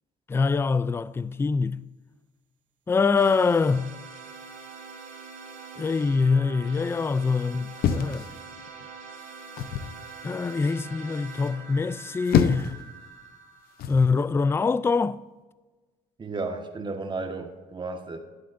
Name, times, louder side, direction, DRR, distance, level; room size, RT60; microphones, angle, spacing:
voice 1, 0.3-1.9 2.9-4.0 5.8-8.3 10.2-12.8 13.9-15.2, left 4 dB, 15° left, 0.3 m, -24 dB
sound 1, 3.2-14.0, right 5 dB, 75° right, 3.5 m, -44 dB
sound 2, 7.8-8.9 9.6-10.0 11.9-12.8 13.8-14.1, left 8 dB, 65° left, 0.7 m, -26 dB
voice 2, 16.2-18.2, right 3 dB, 25° right, 1.5 m, -33 dB
19.5 x 7.6 x 2.6 m
cardioid pair, 110°, 17 cm